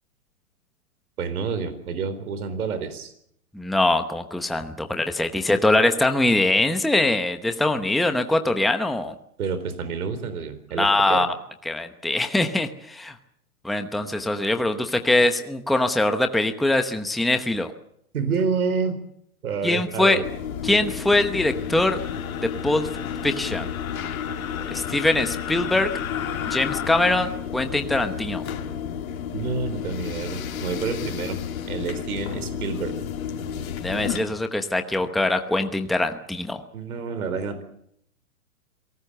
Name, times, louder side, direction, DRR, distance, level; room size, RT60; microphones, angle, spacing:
voice 1, 1.2-3.1 9.4-11.3 18.1-19.0 19.4-20.2 29.3-31.4 31.7-32.9 36.7-37.6, right 5 dB, 75° right, 11 dB, 4.2 m, -28 dB
voice 2, 3.5-9.1 10.8-11.3 11.7-13.1 13.6-17.7 19.6-20.2 20.6-22.0 22.6-22.9 23.2-23.7 24.7-25.9 26.4-28.4 33.8-36.6, left 2 dB, ahead, 6 dB, 0.9 m, -22 dB
sound 1, 20.2-34.2, left 8 dB, 70° left, 3.2 m, -31 dB
27.5 x 18.5 x 6.8 m, 0.72 s
hypercardioid pair, 145°, 43 cm